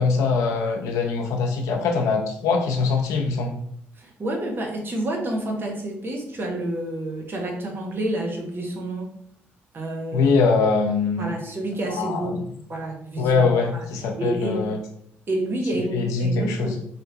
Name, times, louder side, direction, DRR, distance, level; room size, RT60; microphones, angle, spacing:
voice 1, 0.0-3.6 10.1-11.3 12.0-12.4 13.2-14.8 15.9-16.7, left 4 dB, 75° left, 3 dB, 0.6 m, -22 dB
voice 2, 4.0-9.1 9.7-10.3 11.2-12.4 12.7-13.9 14.2-14.7 15.3-16.8, right 1 dB, 40° right, 1 dB, 1.1 m, -29 dB
3.5 x 2.7 x 2.8 m, 0.67 s
hypercardioid pair, 55°, 5 cm